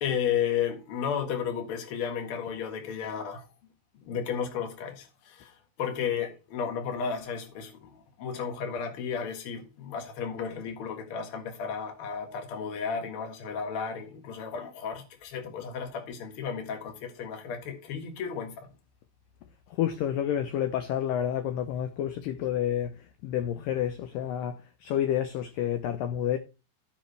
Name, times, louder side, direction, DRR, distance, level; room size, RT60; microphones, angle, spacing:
voice 1, 0.0-3.5 4.0-18.5, left 7 dB, 50° left, 1.7 m, -33 dB
voice 2, 19.7-26.4, left 10 dB, 80° left, 2.0 m, -29 dB
15.0 x 5.4 x 3.3 m
omnidirectional pair, 4.8 m